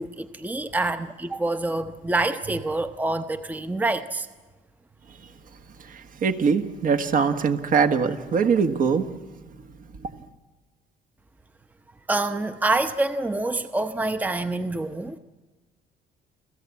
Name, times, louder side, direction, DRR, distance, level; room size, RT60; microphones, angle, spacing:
voice 1, 0.0-4.3 12.1-15.2, right 2 dB, 10° right, 10 dB, 0.8 m, -26 dB
voice 2, 5.8-9.1 10.0-10.1, right 6 dB, 55° right, 7 dB, 1.6 m, -22 dB
29.0 x 15.5 x 8.4 m, 1.3 s
cardioid pair, 110°, 17 cm